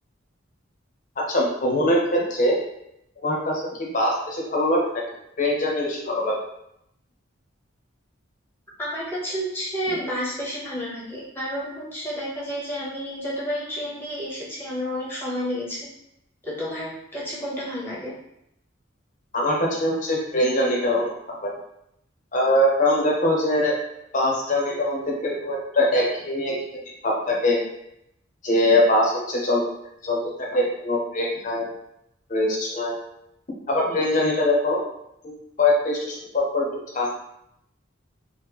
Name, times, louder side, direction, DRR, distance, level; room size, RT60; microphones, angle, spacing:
voice 1, 1.2-2.6 3.2-4.9 5.4-6.4 19.3-21.5 22.3-23.7 24.1-27.6 28.4-29.6 30.0-31.7 32.3-33.0 33.7-34.8 35.2-36.7 36.9-37.1, left 1 dB, 40° left, -2 dB, 0.7 m, -22 dB
voice 2, 8.8-15.8 16.4-18.1, equal, 10° left, -7 dB, 0.9 m, -30 dB
3.1 x 2.1 x 3.5 m, 0.79 s
head